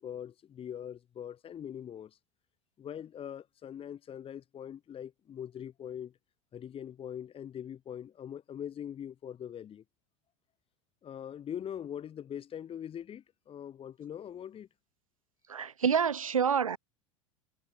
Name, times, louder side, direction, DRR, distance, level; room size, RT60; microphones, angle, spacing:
voice 1, 0.0-2.2 2.8-6.1 6.5-9.8 11.0-14.7, left 9 dB, 35° left, 4.7 m, -42 dB
voice 2, 15.5-16.8, right 7 dB, 90° right, 1.7 m, -27 dB
hypercardioid pair, 85°, 17 cm